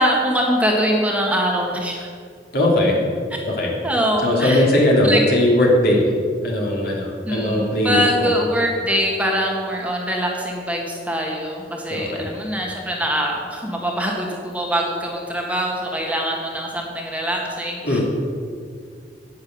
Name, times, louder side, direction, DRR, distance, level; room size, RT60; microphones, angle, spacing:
voice 1, 0.0-2.1 3.8-4.7 5.0-5.2 7.2-18.0, equal, 10° right, -1 dB, 1.7 m, -23 dB
voice 2, 2.5-2.9 3.5-3.7 4.2-6.0 6.4-8.3 11.9-12.3 17.8-18.0, left 1 dB, 60° left, -2 dB, 3.2 m, -19 dB
10.5 x 9.6 x 8.0 m, 2.1 s
head